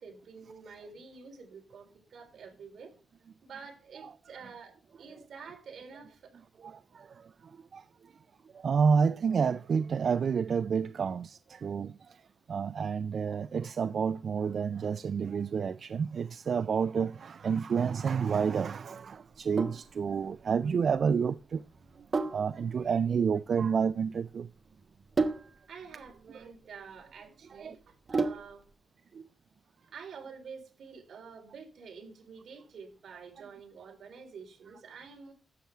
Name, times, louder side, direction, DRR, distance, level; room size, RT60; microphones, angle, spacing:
voice 1, 0.0-2.9 3.4-6.4 25.7-28.6 29.8-35.3, right 5 dB, 70° right, 3.8 m, -48 dB
voice 2, 8.6-11.9 12.5-21.6 22.3-24.5 27.6-27.7, right 6 dB, 55° right, 0.3 m, -29 dB
Sink (filling or washing), 19.3-28.7, right 3 dB, 35° right, 1.0 m, -36 dB
12.5 x 7.5 x 3.4 m
wide cardioid pair, 140°, 0 cm